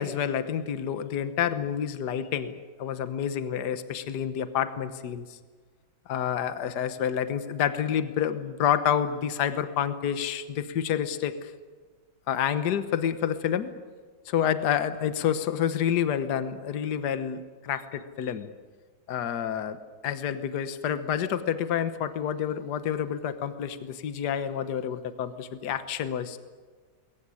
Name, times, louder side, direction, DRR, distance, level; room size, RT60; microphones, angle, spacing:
voice 1, 0.0-5.4 6.1-11.5 12.3-13.7 14.3-18.5 19.1-19.8 20.0-26.4, left 9 dB, 65° left, 11 dB, 1.6 m, -28 dB
22.0 x 18.5 x 9.9 m, 1.5 s
omnidirectional pair, 2.0 m